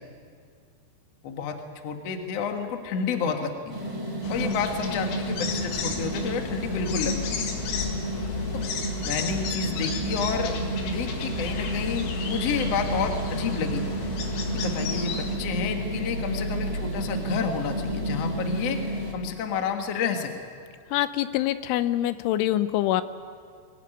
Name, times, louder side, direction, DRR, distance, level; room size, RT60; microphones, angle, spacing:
voice 1, 1.2-1.6 1.8-3.7 4.3-7.2 8.5-8.6 9.0-10.6 10.8-13.9 14.5-18.8 19.1-20.3, left 6 dB, 55° left, 4 dB, 1.9 m, -30 dB
sound 1, 3.7-19.1, right 2 dB, 20° right, 0.9 m, -32 dB
sound 2, 4.2-15.4, left 5 dB, 75° left, 4.2 m, -34 dB
sound 3, 9.8-19.4, equal, 80° right, 1.6 m, -35 dB
voice 2, 20.9-23.0, left 13 dB, 90° left, 12 dB, 3.3 m, -25 dB
23.0 x 17.5 x 9.1 m, 2.2 s
omnidirectional pair, 5.4 m